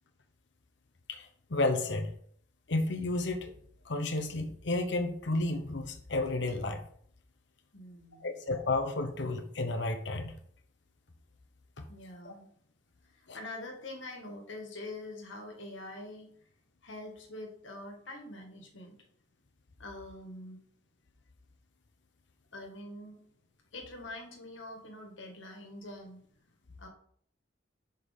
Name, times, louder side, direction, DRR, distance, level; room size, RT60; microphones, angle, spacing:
voice 1, 1.1-2.1 2.7-3.5 3.8-6.8 8.2-10.3 11.8-11.9 12.2-12.3 13.3-13.4, left 2 dB, 65° left, 5 dB, 0.9 m, -32 dB
voice 2, 7.7-8.3 11.9-12.5 13.1-16.3 16.8-19.0 19.8-20.6 22.5-23.2 23.7-26.2 26.8-26.9, left 2 dB, 80° left, 2 dB, 1.9 m, -45 dB
6.6 x 5.4 x 5.2 m, 0.62 s
head